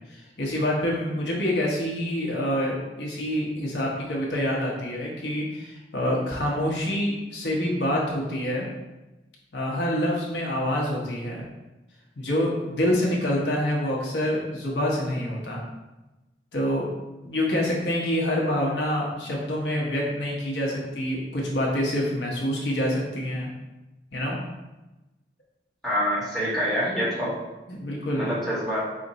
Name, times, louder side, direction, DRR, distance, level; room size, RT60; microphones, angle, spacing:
voice 1, 0.1-8.7 9.5-11.4 12.2-15.6 16.5-16.9 17.2-23.5 24.1-24.4 27.7-28.3, left 1 dB, 75° left, -3 dB, 1.0 m, -26 dB
voice 2, 25.8-27.3 28.2-28.8, equal, ahead, -10 dB, 1.4 m, -26 dB
4.3 x 2.6 x 4.0 m, 1.0 s
head